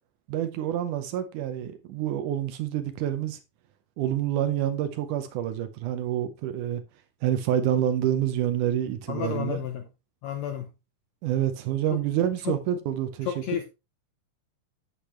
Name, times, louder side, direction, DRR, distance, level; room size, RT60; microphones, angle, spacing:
voice 1, 0.3-3.4 4.0-6.8 7.2-9.6 11.2-13.4, right 11 dB, 75° right, 2.0 m, -27 dB
voice 2, 9.1-9.8 10.2-10.7 12.4-12.5 13.3-13.6, left 9 dB, 75° left, 1.6 m, -31 dB
8.4 x 7.7 x 3.1 m
omnidirectional pair, 4.0 m